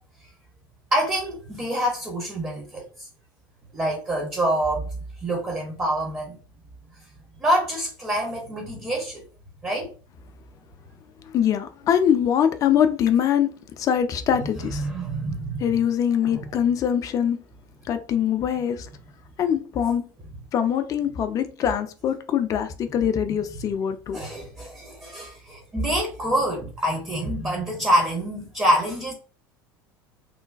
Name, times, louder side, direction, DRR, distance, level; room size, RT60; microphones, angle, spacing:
voice 1, 0.9-3.1 3.7-4.9 5.2-6.4 7.4-9.3 9.6-9.9 14.7-15.6 16.2-16.5 23.3-23.4 24.1-29.1, right 1 dB, 15° right, 0.6 m, -26 dB
voice 2, 11.3-14.9 15.6-17.4 17.8-18.9 19.4-20.0 20.5-24.2, left 9 dB, 30° left, 0.3 m, -23 dB
3.1 x 2.1 x 2.4 m
figure-of-eight pair, 70°, 12 cm